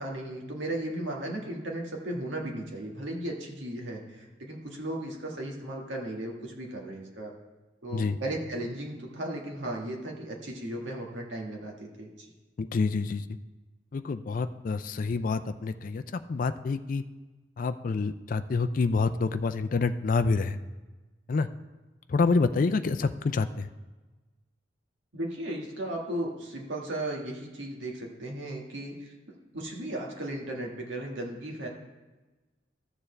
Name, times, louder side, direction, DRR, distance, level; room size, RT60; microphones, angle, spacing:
voice 1, 0.0-7.3 7.8-12.3 25.1-31.7, right 1 dB, 75° right, -1 dB, 1.7 m, -36 dB
voice 2, 12.6-13.4 13.9-17.0 17.6-20.6 21.3-21.5 22.1-23.7, left 4 dB, 45° left, 10 dB, 0.4 m, -27 dB
13.5 x 6.9 x 3.3 m, 1.2 s
head